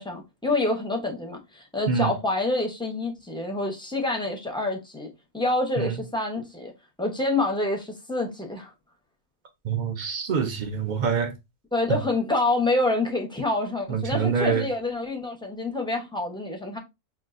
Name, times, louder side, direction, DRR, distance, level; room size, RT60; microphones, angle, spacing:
voice 1, 0.0-5.1 5.3-6.7 7.0-8.7 11.7-16.8, left 2 dB, 5° left, 0.4 m, -27 dB
voice 2, 9.6-11.3 13.9-14.6, right 6 dB, 65° right, 0.4 m, -25 dB
5.9 x 2.4 x 2.5 m
omnidirectional pair, 1.6 m